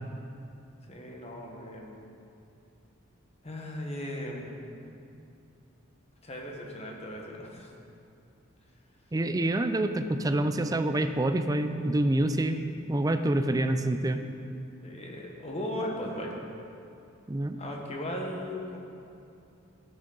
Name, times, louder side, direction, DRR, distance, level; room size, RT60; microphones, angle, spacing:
voice 1, 0.9-2.0 3.4-4.5 6.2-7.7 14.8-16.3 17.6-18.8, left 1 dB, 30° left, -1 dB, 1.3 m, -37 dB
voice 2, 9.1-12.6 12.9-14.2 17.3-17.6, right 1 dB, 20° right, 8 dB, 0.4 m, -27 dB
15.0 x 6.4 x 3.9 m, 2.6 s
head